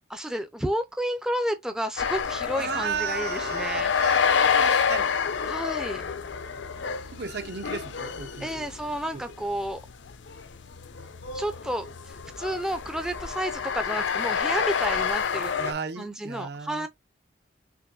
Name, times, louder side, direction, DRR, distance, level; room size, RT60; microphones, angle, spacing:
voice 1, 0.1-3.9 5.4-6.0 8.4-9.8 11.3-15.5 16.0-16.9, equal, 5° right, 0.4 m, -31 dB
sound 1, 2.0-15.7, left 6 dB, 75° left, 0.6 m, -28 dB
voice 2, 2.5-5.1 7.1-8.7 9.1-9.2 15.6-16.9, right 6 dB, 55° right, 0.6 m, -34 dB
5.9 x 3.0 x 2.4 m
head